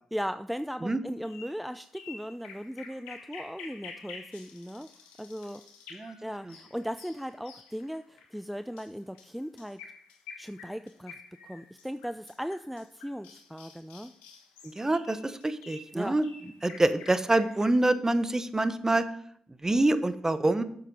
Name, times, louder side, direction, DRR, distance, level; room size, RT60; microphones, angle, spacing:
voice 1, 0.1-4.9 5.2-5.6 6.2-9.8 10.4-11.2 11.4-14.1 15.9-16.1, equal, ahead, 11 dB, 0.5 m, -37 dB
sound 1, 1.3-17.6, left 5 dB, 90° left, 1.3 m, -49 dB
voice 2, 14.6-16.3 16.6-19.0 19.6-20.6, right 2 dB, 25° right, 12 dB, 1.1 m, -26 dB
8.3 x 7.4 x 5.3 m, 0.66 s
hypercardioid pair, 40°, 2 cm